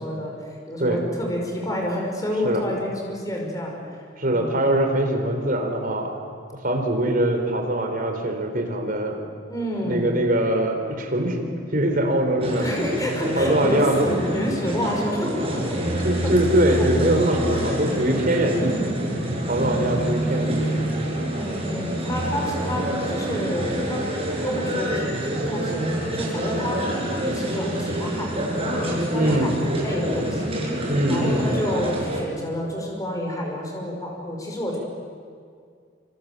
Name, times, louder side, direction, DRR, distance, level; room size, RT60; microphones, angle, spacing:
voice 1, 0.0-3.8 4.3-4.6 9.5-10.1 12.6-15.8 16.2-16.3 16.7-16.9 17.3-17.7 18.6-18.8 19.6-20.0 21.3-26.9 27.2-30.5 31.1-34.8, left 1 dB, 20° left, 0 dB, 5.5 m, -29 dB
voice 2, 4.2-6.2 6.6-9.2 9.8-11.4 11.7-12.6 13.3-14.1 16.0-19.0 19.5-20.9 29.1-29.6 30.9-31.4, right 1 dB, 50° right, 4 dB, 4.1 m, -22 dB
sound 1, 12.4-32.2, right 1 dB, 30° right, 6.5 m, -27 dB
27.5 x 26.5 x 7.6 m, 2.2 s
head